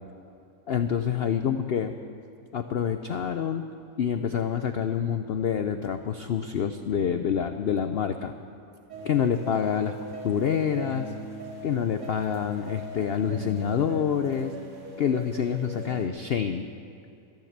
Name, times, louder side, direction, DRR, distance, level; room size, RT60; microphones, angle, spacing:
voice 1, 0.7-1.9 2.5-3.6 4.0-8.3 9.0-9.9 10.2-11.1 11.6-14.5 15.0-16.7, left 8 dB, 75° left, 8 dB, 0.5 m, -27 dB
sound 1, 8.9-16.1, right 1 dB, 65° right, 2.9 m, -40 dB
13.5 x 12.0 x 7.3 m, 2.7 s
omnidirectional pair, 1.7 m